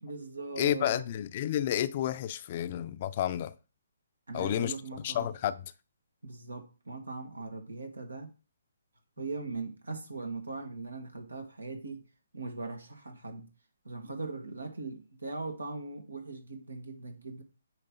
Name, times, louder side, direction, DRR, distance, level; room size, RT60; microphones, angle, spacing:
voice 1, 0.0-1.0 4.3-5.3 6.2-8.3 9.2-12.0 12.3-13.5 13.8-17.4, right 3 dB, 90° right, 2.0 m, -40 dB
voice 2, 0.6-3.5 4.3-4.7 5.0-5.7, left 11 dB, 40° left, 0.5 m, -30 dB
9.0 x 3.3 x 5.4 m
figure-of-eight pair, 140°, 0 cm